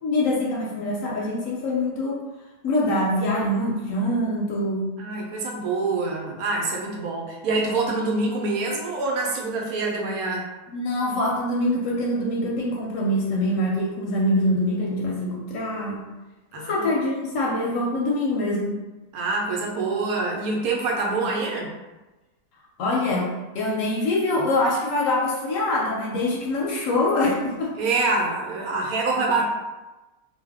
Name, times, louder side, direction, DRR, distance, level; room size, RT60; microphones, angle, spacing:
voice 1, 0.0-2.2 2.6-4.9 10.7-16.0 16.7-18.7 22.8-23.3 23.5-27.8, left 1 dB, 70° left, -3 dB, 0.8 m, -24 dB
voice 2, 5.0-10.4 16.5-16.9 19.1-21.7 27.8-29.4, right 3 dB, 75° right, -1 dB, 1.0 m, -25 dB
2.6 x 2.1 x 3.4 m, 1.1 s
omnidirectional pair, 1.6 m